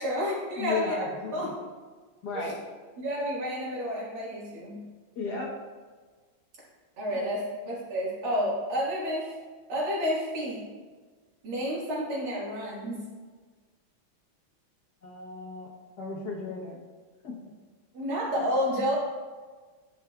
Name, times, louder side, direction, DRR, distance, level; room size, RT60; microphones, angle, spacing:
voice 1, 0.0-1.0 1.3-1.5 2.3-2.5 3.0-4.8 7.0-9.3 9.7-10.6 11.4-13.0 17.9-18.9, equal, 85° right, -6 dB, 2.7 m, -30 dB
voice 2, 0.6-1.6 2.2-2.6 5.1-5.5 15.0-15.7 16.0-16.8 17.2-17.4, left 3 dB, 55° left, -3 dB, 1.5 m, -34 dB
10.0 x 5.6 x 2.4 m, 1.4 s
omnidirectional pair, 2.2 m